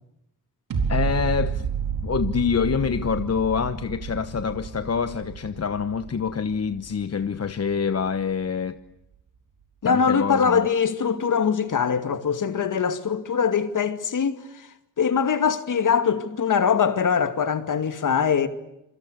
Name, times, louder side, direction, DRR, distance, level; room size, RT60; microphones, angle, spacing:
sound 1, 0.7-7.8 8.2-8.3, right 7 dB, 75° right, 4.4 m, -30 dB
voice 1, 0.9-1.6 2.0-8.8 9.8-10.6, left 6 dB, 45° left, 1.1 m, -26 dB
voice 2, 9.8-14.4 15.0-18.5, left 6 dB, 60° left, 2.4 m, -22 dB
27.5 x 23.5 x 8.2 m
cardioid pair, 90°, 35 cm